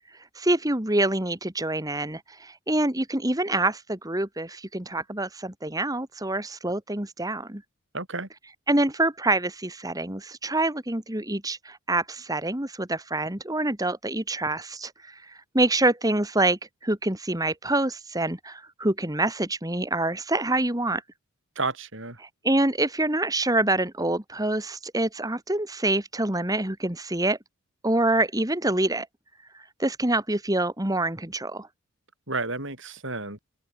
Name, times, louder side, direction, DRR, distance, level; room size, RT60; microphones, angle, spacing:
voice 1, 0.4-7.6 8.7-21.0 22.2-27.4 27.8-29.1 29.8-31.7, right 2 dB, 15° right, 2.0 m, -26 dB
voice 2, 7.9-8.3 21.5-22.2 32.3-33.4, right 3 dB, 55° right, 6.6 m, -31 dB
head